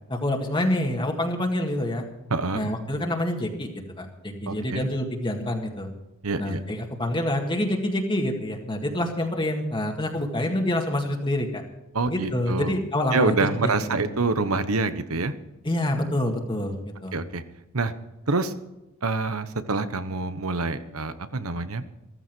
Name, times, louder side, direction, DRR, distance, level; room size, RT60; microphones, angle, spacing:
voice 1, 0.1-2.0 2.5-3.7 4.0-5.9 6.4-11.6 12.1-13.4 13.6-14.0 15.6-16.7 17.0-17.1, left 1 dB, 25° left, 1 dB, 1.8 m, -27 dB
voice 2, 2.3-2.7 4.5-4.9 6.2-6.6 11.9-12.7 13.1-15.3 17.1-17.4 17.7-17.9 18.3-18.5 19.0-21.8, right 3 dB, 80° right, 12 dB, 1.1 m, -26 dB
14.5 x 14.5 x 4.6 m, 0.96 s
head